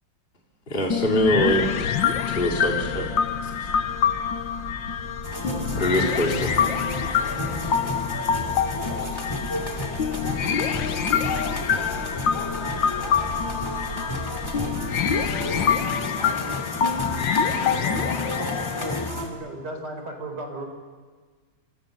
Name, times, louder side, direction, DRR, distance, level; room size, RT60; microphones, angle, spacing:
voice 1, 0.7-1.9 2.3-3.1 3.4-3.5 5.8-6.5, equal, 25° left, -1 dB, 2.7 m, -24 dB
sound 1, 0.9-19.1, left 7 dB, 65° left, 1.8 m, -26 dB
sound 2, 1.4-15.9, left 1 dB, 45° left, 4.5 m, -39 dB
sound 3, 5.2-19.3, left 1 dB, 10° left, 2.9 m, -32 dB
voice 2, 5.6-6.2 7.7-8.0 8.7-11.5 13.0-14.2, right 2 dB, 75° right, 0 dB, 7.5 m, -49 dB
voice 3, 17.7-20.7, right 2 dB, 50° right, 4 dB, 5.0 m, -36 dB
27.0 x 26.5 x 6.7 m, 1.5 s
omnidirectional pair, 2.2 m